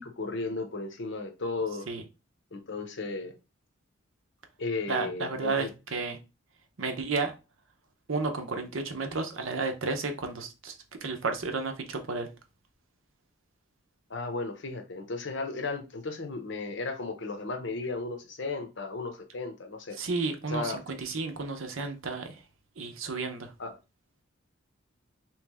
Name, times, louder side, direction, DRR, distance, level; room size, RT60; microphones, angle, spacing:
voice 1, 0.0-1.9 2.5-3.3 4.6-5.7 14.1-20.0 20.5-20.8 23.6-23.7, left 3 dB, 60° left, 0.7 m, -35 dB
voice 2, 4.9-6.2 6.8-7.3 8.1-10.8 11.0-12.3 20.0-22.4 22.8-23.5, right 3 dB, 70° right, 0.7 m, -32 dB
3.4 x 3.1 x 3.5 m
head